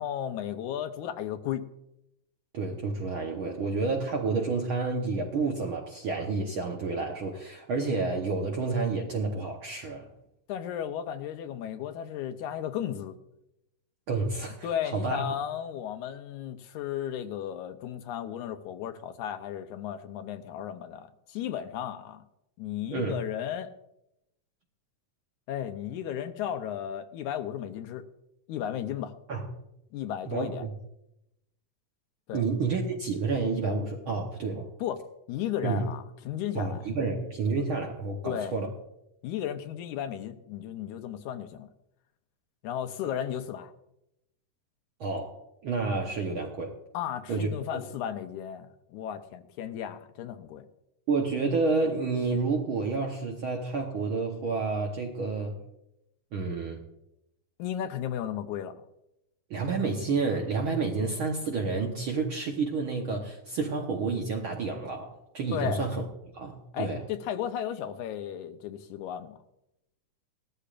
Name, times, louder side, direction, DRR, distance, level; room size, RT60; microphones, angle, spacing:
voice 1, 0.0-1.7 10.5-13.2 14.6-22.2 22.6-23.7 25.5-28.0 28.5-29.1 29.9-30.7 32.3-32.4 34.8-36.8 38.2-38.6 39.2-41.7 42.6-43.7 46.9-50.7 57.6-58.8 65.5-65.8 66.7-69.4, left 10 dB, 80° left, 2.1 m, -34 dB
voice 2, 2.5-10.0 14.1-15.2 22.9-23.2 29.3-29.4 30.3-30.7 32.3-34.7 35.6-35.8 36.5-38.7 45.0-45.4 45.6-46.7 47.3-47.8 51.1-55.6 56.3-56.8 59.5-66.0 66.3-67.0, right 4 dB, 60° right, 1.4 m, -30 dB
18.0 x 13.5 x 2.5 m
omnidirectional pair, 3.6 m